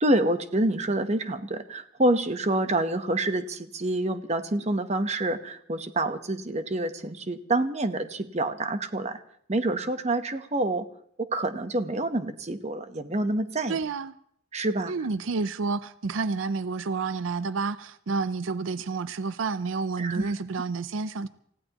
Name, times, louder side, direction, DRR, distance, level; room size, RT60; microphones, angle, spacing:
voice 1, 0.0-9.2 9.5-10.8 11.3-13.8 14.5-14.9 20.0-20.3, right 1 dB, 35° right, 1.0 m, -27 dB
voice 2, 13.7-14.1 14.9-21.3, right 4 dB, 90° right, 0.6 m, -29 dB
28.5 x 16.0 x 3.0 m
head